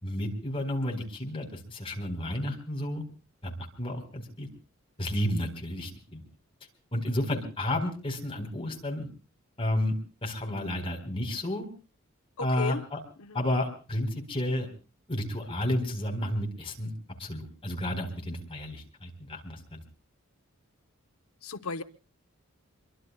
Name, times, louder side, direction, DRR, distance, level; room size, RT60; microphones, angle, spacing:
voice 1, 0.0-3.0 3.4-4.5 5.0-6.2 6.9-9.1 9.6-9.9 10.2-11.7 12.4-13.0 13.3-14.7 15.1-16.9 17.2-19.8, left 1 dB, 25° left, 2 dB, 4.0 m, -31 dB
voice 2, 12.4-12.8 13.2-13.4 21.4-21.8, left 4 dB, 85° left, 8 dB, 0.9 m, -35 dB
26.5 x 23.5 x 2.3 m, 0.34 s
head